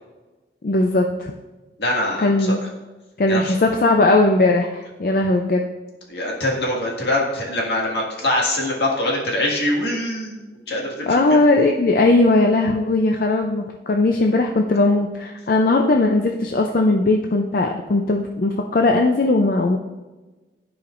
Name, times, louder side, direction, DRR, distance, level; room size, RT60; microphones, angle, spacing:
voice 1, 0.6-1.3 2.2-2.6 3.2-5.6 11.0-19.8, left 2 dB, 50° left, 2 dB, 0.4 m, -18 dB
voice 2, 1.8-2.7 3.3-3.6 6.1-10.4 10.7-11.4, left 1 dB, 75° left, -2 dB, 1.8 m, -23 dB
13.0 x 5.1 x 2.5 m, 1.2 s
head